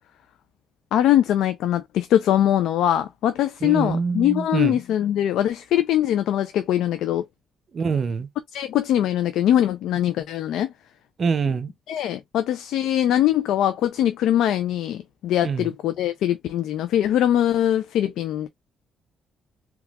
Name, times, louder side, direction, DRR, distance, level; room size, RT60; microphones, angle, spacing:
voice 1, 0.9-7.2 8.5-10.7 11.9-18.5, left 11 dB, 85° left, 0.4 m, -22 dB
voice 2, 3.6-4.8 7.7-8.3 11.2-11.7 15.4-15.7, right 5 dB, 50° right, 0.6 m, -25 dB
3.6 x 2.9 x 2.3 m
cardioid pair, 90°, 0 cm